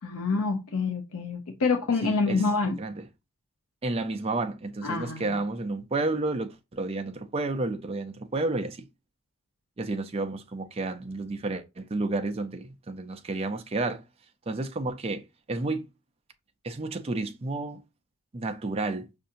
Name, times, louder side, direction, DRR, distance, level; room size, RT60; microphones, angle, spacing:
voice 1, 0.0-2.8 4.8-5.4, left 4 dB, 80° left, 0.6 m, -27 dB
voice 2, 2.0-3.0 3.8-8.9 9.8-14.0 14.5-15.9 16.6-17.8 18.3-19.1, right 2 dB, 25° right, 0.4 m, -31 dB
5.4 x 2.6 x 2.6 m
head